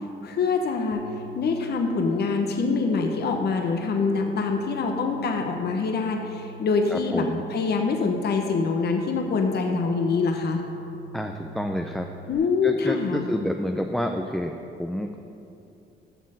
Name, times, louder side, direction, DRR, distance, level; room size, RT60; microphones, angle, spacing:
voice 1, 0.2-1.1 1.4-10.6 12.3-13.3, left 4 dB, 55° left, 3 dB, 1.0 m, -25 dB
sound 1, 0.9-12.3, right 1 dB, 90° left, 1.0 m, -44 dB
voice 2, 6.9-7.4 11.1-12.1 12.6-14.5 14.8-15.1, equal, ahead, 3 dB, 0.5 m, -28 dB
8.1 x 6.3 x 7.6 m, 2.7 s
cardioid pair, 90°, 20 cm